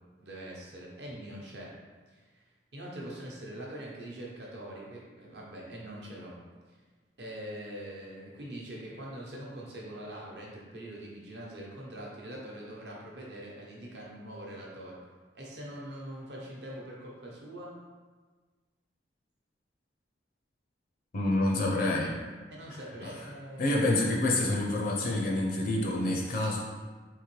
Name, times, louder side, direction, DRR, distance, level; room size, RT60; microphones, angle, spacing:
voice 1, 0.2-1.7 2.1-2.4 2.7-6.4 6.7-6.8 7.2-15.0 15.3-17.7 21.7-21.9 22.5-23.8, right 1 dB, 65° right, -3 dB, 0.8 m, -43 dB
voice 2, 21.1-22.1 23.0-23.1 23.6-26.6, left 2 dB, 50° left, -1 dB, 0.4 m, -27 dB
3.7 x 2.9 x 3.1 m, 1.4 s
head